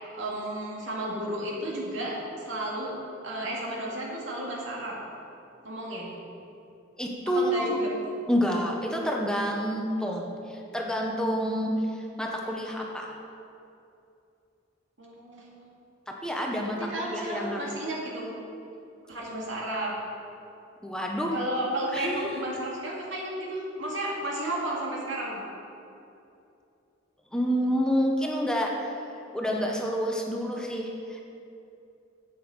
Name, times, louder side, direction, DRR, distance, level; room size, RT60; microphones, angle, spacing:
voice 1, 0.1-2.2 2.5-3.0 3.2-5.0 5.6-6.2 7.3-7.9 15.0-15.7 16.6-18.4 19.1-19.9 21.3-25.4, right 1 dB, 80° right, -4 dB, 2.3 m, -33 dB
voice 2, 7.0-7.7 8.3-11.7 12.2-13.2 16.2-16.8 17.1-17.6 20.8-21.3 21.9-22.5 27.3-28.7 29.3-31.2, equal, 5° left, -1 dB, 0.9 m, -28 dB
11.0 x 8.4 x 4.4 m, 2.7 s
head